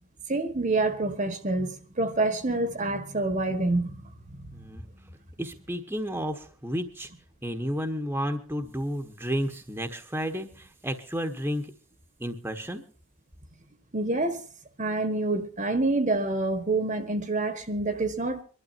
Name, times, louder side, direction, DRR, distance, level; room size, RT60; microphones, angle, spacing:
voice 1, 0.3-4.5 13.9-14.5 14.8-18.4, right 2 dB, 35° right, 1.3 m, -27 dB
voice 2, 4.5-4.9 5.4-7.1 7.4-11.7 12.2-12.8, equal, 10° right, 1.2 m, -32 dB
24.5 x 12.0 x 2.7 m
head